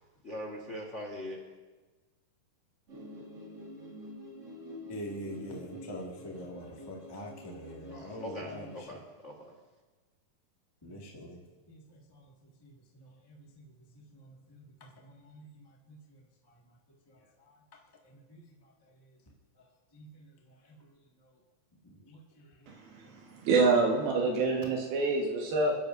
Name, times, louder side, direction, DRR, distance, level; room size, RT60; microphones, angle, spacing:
voice 1, 0.2-1.4 7.9-9.5, equal, 60° left, -1 dB, 0.7 m, -41 dB
sound 1, 2.9-8.8, left 1 dB, 40° right, 1.1 m, -47 dB
voice 2, 4.9-8.7 10.8-11.4 11.7-11.8 12.1-12.2 12.6-12.7 13.0-13.3 13.9-14.0 14.5-16.0 18.0-18.4 19.9-20.2 22.1-22.2, equal, 20° left, -2 dB, 0.6 m, -44 dB
voice 3, 22.7-25.8, right 3 dB, 90° right, -1 dB, 3.3 m, -27 dB
28.0 x 11.0 x 2.6 m, 1.3 s
omnidirectional pair, 4.1 m